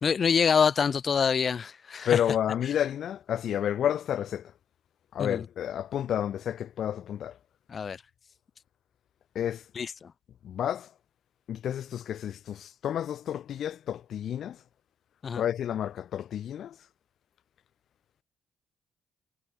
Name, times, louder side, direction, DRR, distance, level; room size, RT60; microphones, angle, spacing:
voice 1, 0.0-2.2 5.2-5.4 7.7-8.0 9.7-10.1 15.2-15.4, left 6 dB, 45° left, 3.2 m, -26 dB
voice 2, 2.0-4.5 5.1-7.4 9.3-9.6 10.4-10.9 11.5-14.6 15.4-16.8, left 10 dB, 65° left, 5.0 m, -30 dB
cardioid pair, 90°, 0 cm